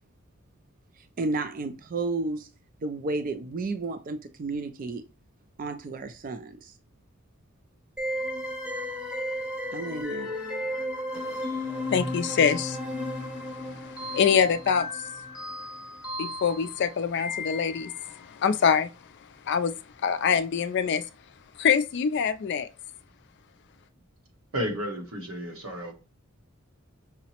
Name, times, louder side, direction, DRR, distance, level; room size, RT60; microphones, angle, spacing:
voice 1, 1.2-2.5 2.8-5.0 5.6-6.7 9.7-10.3, right 3 dB, 40° right, 0.4 m, -32 dB
sound 1, 8.0-18.1, left 1 dB, 5° right, 0.7 m, -34 dB
voice 2, 11.1-14.9 16.2-18.9 19.5-19.7 20.0-21.0 21.6-22.7, left 7 dB, 55° left, 0.4 m, -25 dB
voice 3, 24.5-25.9, equal, 90° right, 1.2 m, -32 dB
5.5 x 2.0 x 2.8 m
head